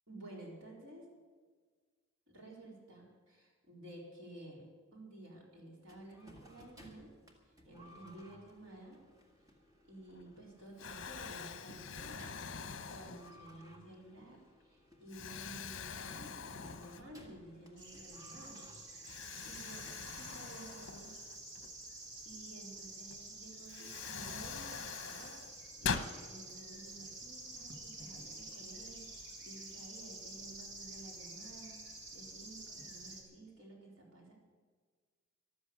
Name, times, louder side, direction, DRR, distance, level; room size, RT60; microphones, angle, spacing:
voice 1, 0.1-1.1 2.3-4.6 4.9-7.1 7.4-9.0 9.9-12.4 12.8-19.0 19.4-21.2 22.2-34.3, right 1 dB, 75° right, -2 dB, 4.1 m, -53 dB
sound 1, 5.9-20.6, equal, 15° right, 1.8 m, -60 dB
Explosion, 10.1-10.5 10.8-13.6 14.2-14.4 15.1-17.4 17.7-17.8 19.0-21.7 23.1-23.2 23.7-26.2, left 6 dB, 60° left, 0.9 m, -43 dB
sound 2, 17.8-33.2, right 2 dB, 60° right, 2.5 m, -49 dB
14.0 x 12.5 x 6.5 m, 1.5 s
head